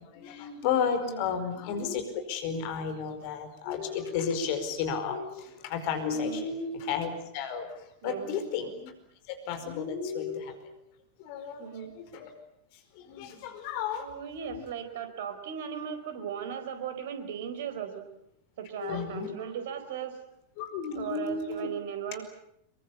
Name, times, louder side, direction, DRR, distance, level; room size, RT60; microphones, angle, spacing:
voice 1, 0.0-8.9 9.3-10.6 11.2-12.3 12.9-14.1 14.5-14.6 18.8-19.3 20.6-21.7, left 6 dB, 45° left, 8 dB, 4.9 m, -33 dB
voice 2, 6.1-6.5 8.0-8.4 11.6-11.9 14.0-18.1 18.6-20.2 20.9-22.2, right 8 dB, 55° right, 9 dB, 4.6 m, -37 dB
26.5 x 23.5 x 8.6 m, 0.75 s
figure-of-eight pair, 90°, 0 cm